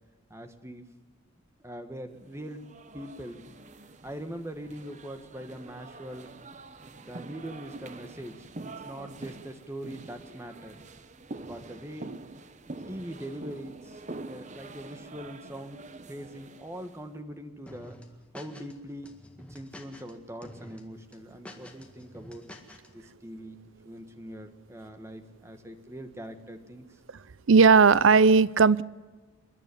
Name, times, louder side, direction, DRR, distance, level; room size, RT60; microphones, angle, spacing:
voice 1, 0.3-0.9 1.6-2.7 2.9-3.4 4.0-6.4 7.0-10.8 11.5-12.1 12.9-18.0 18.3-22.5 22.9-27.0, equal, 15° right, 8 dB, 1.4 m, -42 dB
sound 1, 2.3-17.0, right 2 dB, 35° right, 0.9 m, -45 dB
sound 2, 17.7-18.7 19.0-20.1 20.4-20.8 21.1-22.9, left 1 dB, 5° left, 1.9 m, -47 dB
voice 2, 27.5-28.8, right 5 dB, 70° right, 19 dB, 0.6 m, -17 dB
27.0 x 11.0 x 9.9 m, 1.3 s
head